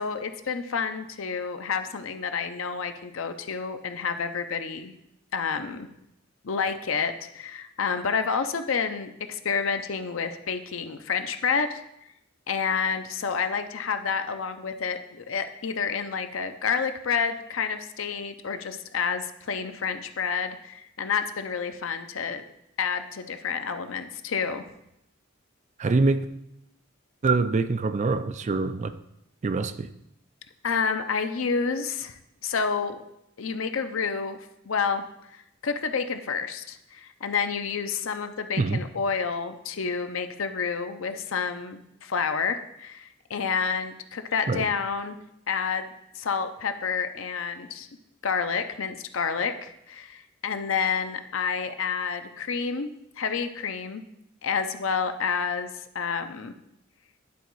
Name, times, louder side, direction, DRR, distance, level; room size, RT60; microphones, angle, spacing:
voice 1, 0.0-4.9 5.3-5.9 6.4-11.8 12.5-22.4 22.8-24.6 30.6-33.0 33.4-34.4 34.6-35.0 35.3-45.2 45.5-45.9 46.1-47.9 48.2-54.0 54.4-56.5, left 6 dB, 75° left, 8 dB, 0.6 m, -29 dB
voice 2, 25.8-26.3 27.2-28.9 29.4-29.9 38.6-38.8 44.5-44.7, right 3 dB, 35° right, 11 dB, 0.4 m, -24 dB
10.5 x 4.1 x 4.6 m, 0.81 s
head